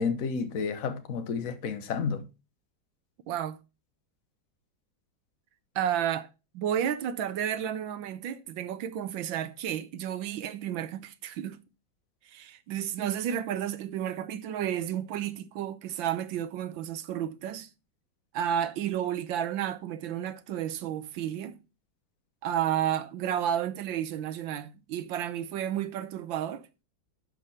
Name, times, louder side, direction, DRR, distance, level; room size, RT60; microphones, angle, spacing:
voice 1, 0.0-2.2, left 5 dB, 50° left, 1.4 m, -31 dB
voice 2, 3.3-3.6 5.7-6.3 6.5-11.6 12.3-17.7 18.3-21.6 22.4-26.6, right 10 dB, 85° right, 1.5 m, -32 dB
12.0 x 5.1 x 4.2 m
omnidirectional pair, 2.1 m